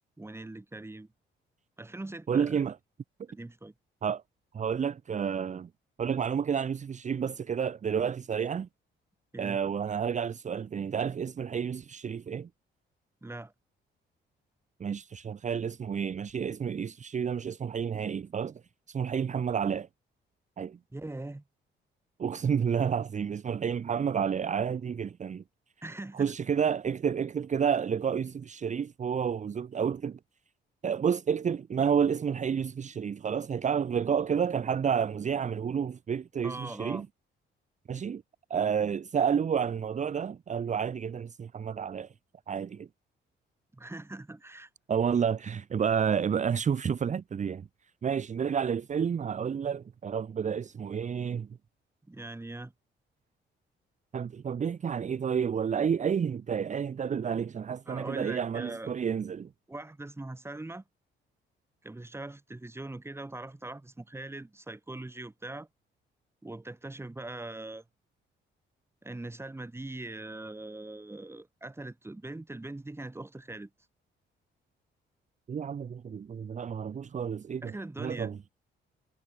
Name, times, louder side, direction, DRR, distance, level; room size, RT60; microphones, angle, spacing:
voice 1, 0.2-1.1 1.8-2.6 3.3-3.7 9.3-9.6 13.2-13.5 20.9-21.4 25.8-26.3 36.4-37.0 43.7-44.7 52.1-52.7 57.9-58.9 59.7-60.8 61.8-65.7 66.4-67.8 69.0-73.7 77.6-78.3, right 2 dB, 10° right, 2.5 m, -41 dB
voice 2, 2.3-2.8 4.0-4.2 4.5-5.7 6.0-8.7 9.4-12.5 14.8-18.6 18.9-19.9 20.6-20.8 22.2-25.4 26.1-30.2 30.8-37.1 37.9-38.2 38.5-42.1 42.5-42.9 44.9-47.7 48.0-51.5 54.1-59.5 75.5-78.4, right 7 dB, 40° right, 0.8 m, -30 dB
cardioid pair, 90°, 20 cm